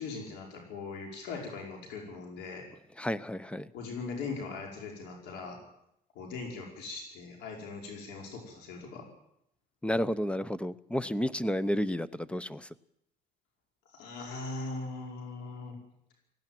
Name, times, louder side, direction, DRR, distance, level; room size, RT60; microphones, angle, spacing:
voice 1, 0.0-2.6 3.7-5.6 6.2-9.1 13.9-15.8, left 4 dB, 85° left, 1 dB, 5.2 m, -40 dB
voice 2, 3.0-3.7 9.8-12.7, equal, 5° left, 17 dB, 0.8 m, -31 dB
18.5 x 16.0 x 9.2 m, 0.78 s
cardioid pair, 110°, 17 cm